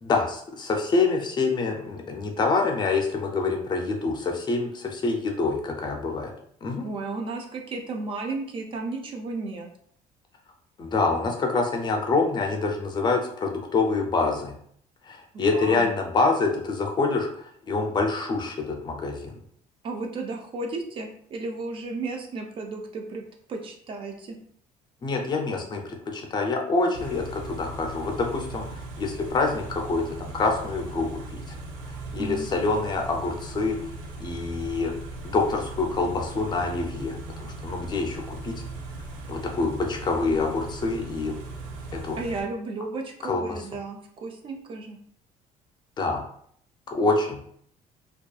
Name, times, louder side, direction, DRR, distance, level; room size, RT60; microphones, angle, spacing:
voice 1, 0.0-6.3 6.6-6.8 10.8-14.6 15.1-19.4 25.0-31.6 32.1-33.8 34.2-34.9 35.2-38.6 39.3-41.4 41.9-42.2 43.2-43.6 46.0-46.2 46.9-47.5, left 3 dB, 30° left, 2 dB, 0.5 m, -26 dB
voice 2, 6.8-9.7 15.3-15.9 19.8-23.2 23.5-24.4 32.2-32.5 42.2-45.0, right 3 dB, 40° right, 3 dB, 0.4 m, -34 dB
Car / Idling, 26.9-42.4, right 2 dB, 90° right, 0.6 m, -39 dB
2.6 x 2.3 x 2.3 m, 0.64 s
cardioid pair, 135°, 14 cm